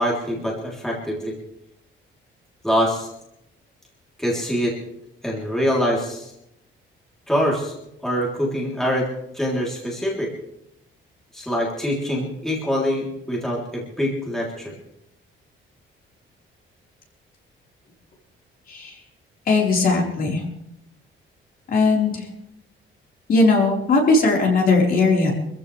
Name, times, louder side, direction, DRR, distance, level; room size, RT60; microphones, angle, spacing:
voice 1, 0.0-1.3 2.6-3.1 4.2-4.8 5.2-6.3 7.3-7.8 8.0-9.1 9.3-10.3 11.3-14.7, equal, ahead, -4 dB, 3.3 m, -24 dB
voice 2, 19.5-20.4 21.7-22.2 23.3-25.3, left 3 dB, 45° left, -1 dB, 4.3 m, -18 dB
25.5 x 15.0 x 3.3 m, 0.82 s
cardioid pair, 175°, 21 cm